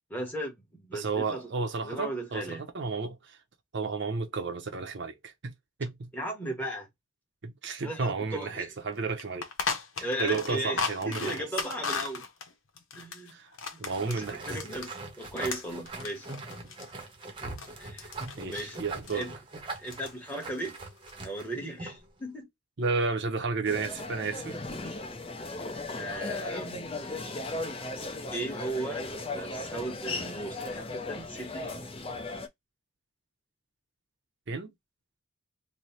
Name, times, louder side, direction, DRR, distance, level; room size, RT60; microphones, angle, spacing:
voice 1, 0.1-1.5 1.8-2.6 6.1-6.9 7.8-8.7 10.0-12.2 12.9-13.3 13.7-16.3 17.8-18.1 18.4-18.8 19.1-19.3 19.8-20.8 21.2-22.5 24.7-25.0 25.9-26.9 28.3-32.0, right 1 dB, 10° left, 1.2 m, -37 dB
voice 2, 0.9-3.4 3.7-5.5 5.8-6.1 7.4-9.5 10.0-11.4 13.3-13.5 13.8-14.5 18.4-19.3 22.8-24.6 34.5-34.7, right 4 dB, 60° right, 0.7 m, -32 dB
sound 1, 8.4-8.5 8.8-8.9 9.2-14.9 15.2-17.7 18.0-18.8 19.0-19.3 19.7-20.1 20.4-21.1, left 5 dB, 80° left, 0.8 m, -36 dB
sound 2, 13.9-22.1, right 3 dB, 25° right, 0.8 m, -42 dB
sound 3, 23.6-32.5, left 2 dB, 30° left, 0.6 m, -37 dB
3.2 x 2.1 x 4.1 m
head